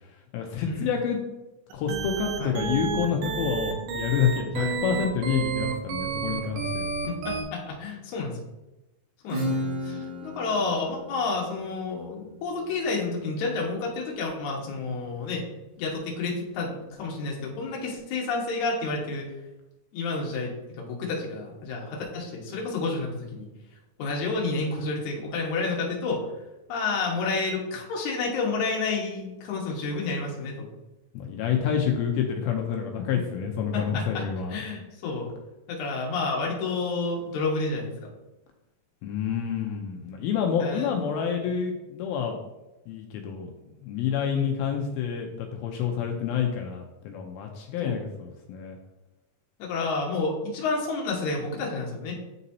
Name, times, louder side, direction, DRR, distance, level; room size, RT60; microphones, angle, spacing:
voice 1, 0.3-1.2 1.7-6.9 31.1-34.6 39.0-42.4 42.9-48.8, left 7 dB, 85° left, 2 dB, 2.4 m, -28 dB
sound 1, 1.7-7.4, right 5 dB, 75° right, 2.3 m, -30 dB
voice 2, 7.1-8.4 9.2-9.6 9.8-15.4 15.8-19.3 19.9-23.5 24.0-26.2 26.7-30.7 33.7-34.2 34.5-35.3 35.7-37.9 40.6-40.9 41.5-41.6 44.3-44.6 47.8-48.0 49.6-52.1, left 3 dB, 60° left, -2 dB, 2.3 m, -30 dB
Acoustic guitar / Strum, 9.3-14.7, equal, 60° right, 1.5 m, -35 dB
9.3 x 4.1 x 2.7 m, 0.99 s
omnidirectional pair, 4.3 m